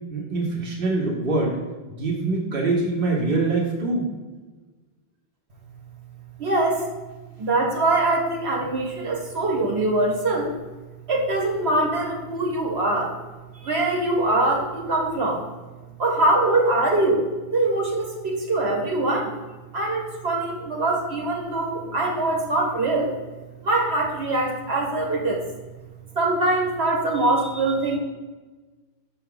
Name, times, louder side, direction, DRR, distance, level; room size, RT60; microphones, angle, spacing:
voice 1, 0.1-1.6 1.9-4.1, right 3 dB, 60° right, -2 dB, 1.3 m, -24 dB
voice 2, 6.4-6.9 7.4-10.6 11.1-13.1 13.5-15.4 16.0-17.2 17.5-19.4 19.7-23.1 23.6-25.4 26.1-28.0, right 2 dB, 80° right, 0 dB, 1.7 m, -23 dB
6.6 x 5.7 x 3.8 m, 1.3 s
omnidirectional pair, 1.1 m